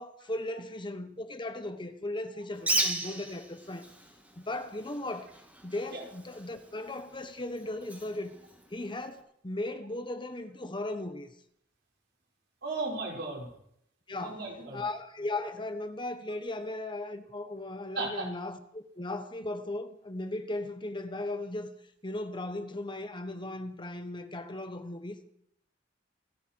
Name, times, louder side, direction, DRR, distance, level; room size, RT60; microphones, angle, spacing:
voice 1, 0.0-3.9 4.4-5.3 5.6-8.3 8.7-11.3 14.1-14.5 14.7-21.7 22.0-25.2, left 2 dB, 25° left, 1.2 m, -37 dB
Bird, 2.5-9.2, right 1 dB, 10° right, 2.5 m, -37 dB
voice 2, 12.6-13.5 14.2-14.8 18.0-18.3, right 3 dB, 65° right, 5.6 m, -35 dB
27.5 x 9.2 x 4.7 m
head